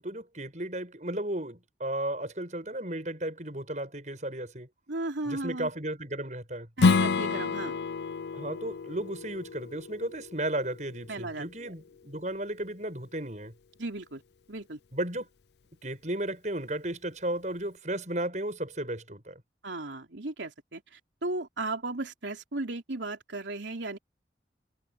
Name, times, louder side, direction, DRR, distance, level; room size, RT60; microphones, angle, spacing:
voice 1, 0.0-4.7 5.3-6.7 8.3-13.5 14.9-15.3 15.8-19.4, right 1 dB, 40° right, 7.9 m, -34 dB
voice 2, 4.9-5.7 6.8-7.7 11.1-11.7 13.8-14.2 14.5-14.8 19.6-24.0, right 2 dB, 90° right, 3.4 m, -35 dB
Strum, 6.8-12.0, left 4 dB, 70° left, 0.5 m, -29 dB
head